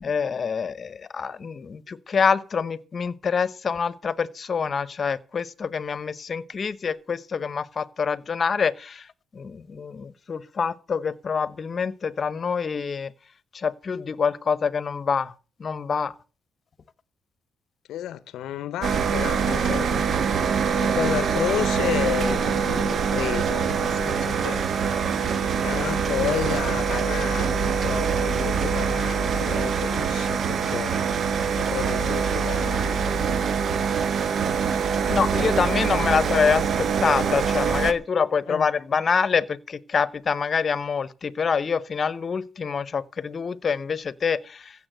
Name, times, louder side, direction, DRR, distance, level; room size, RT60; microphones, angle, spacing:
voice 1, 0.0-9.1 9.3-13.1 13.5-15.3 15.6-16.1 35.1-44.9, left 6 dB, 40° left, 0.9 m, -26 dB
voice 2, 17.9-20.0 20.8-24.6 25.6-31.0 31.6-33.0 38.5-38.7, left 12 dB, 80° left, 0.6 m, -31 dB
sound 1, 18.8-37.9, right 6 dB, 55° right, 1.3 m, -24 dB
15.5 x 7.4 x 7.8 m
cardioid pair, 90°, 0 cm